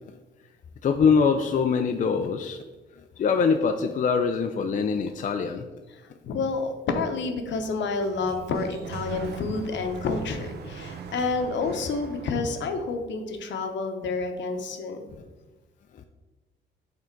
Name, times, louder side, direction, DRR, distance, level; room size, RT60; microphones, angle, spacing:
voice 1, 0.8-2.6 3.2-5.7, left 5 dB, 40° left, 6 dB, 0.4 m, -23 dB
voice 2, 6.2-15.0, left 4 dB, 65° left, 6 dB, 0.9 m, -29 dB
Sliding door, 7.7-12.9, right 6 dB, 55° right, 0.7 m, -40 dB
5.8 x 3.8 x 4.5 m, 1.2 s
cardioid pair, 90°, 20 cm